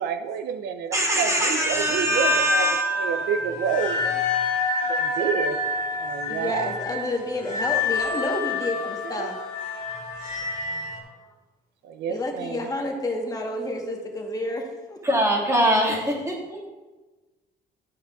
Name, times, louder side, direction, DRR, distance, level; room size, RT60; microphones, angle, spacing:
voice 1, 0.0-4.2 4.9-6.8 9.0-9.3 11.8-12.6, right 7 dB, 80° right, 10 dB, 0.5 m, -29 dB
voice 2, 0.9-3.1 15.0-16.6, right 1 dB, 15° right, -3 dB, 1.8 m, -23 dB
sound 1, 1.3-11.0, left 3 dB, 50° left, 2.0 m, -27 dB
voice 3, 4.5-5.1 6.3-9.4 10.7-11.1 12.1-15.0, left 1 dB, 20° left, 1 dB, 1.1 m, -30 dB
11.5 x 6.5 x 2.3 m, 1.2 s
cardioid pair, 110°, 17 cm